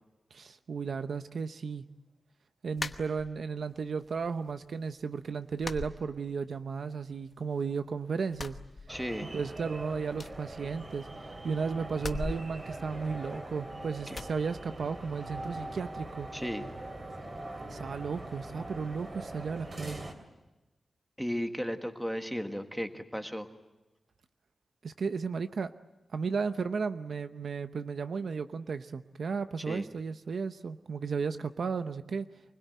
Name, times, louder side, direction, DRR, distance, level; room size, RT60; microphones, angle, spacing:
voice 1, 0.3-1.9 2.6-8.6 9.3-11.1 11.4-16.3 17.7-20.0 24.8-25.7 26.1-32.3, right 5 dB, 65° right, 10 dB, 0.8 m, -34 dB
sound 1, 2.8-3.7 4.0-4.7 5.0-5.1 5.6-6.7 7.0-7.8 8.2-9.4 9.7-9.8 10.1-11.3 11.9-13.6 14.1-14.4, left 3 dB, 35° left, 1.0 m, -41 dB
voice 2, 8.9-9.3 14.1-14.2 16.3-16.6 21.2-23.5 29.7-29.9, equal, ahead, 6 dB, 1.5 m, -35 dB
sound 2, 8.9-20.1, right 1 dB, 30° right, 3.1 m, -42 dB
25.5 x 20.5 x 9.3 m, 1.1 s
wide cardioid pair, 165°, 0 cm